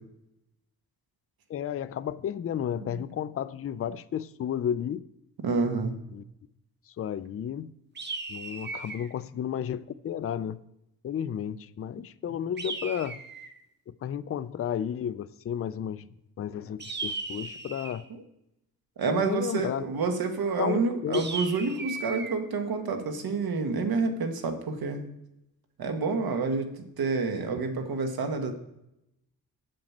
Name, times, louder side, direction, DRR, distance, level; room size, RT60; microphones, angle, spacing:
voice 1, 1.5-5.0 6.1-6.2 7.0-7.7 8.3-10.6 11.0-13.2 13.9-16.1 16.4-18.0 19.1-19.8 20.6-21.2, left 9 dB, 40° left, 0.4 m, -32 dB
voice 2, 5.4-6.0 19.0-25.0 25.8-26.7 27.0-28.5, right 4 dB, 70° right, 1.4 m, -28 dB
sound 1, 8.0-9.1 12.6-13.6 16.8-18.1 21.1-22.4, right 4 dB, 30° right, 0.9 m, -36 dB
7.8 x 5.2 x 7.2 m
cardioid pair, 100°, 37 cm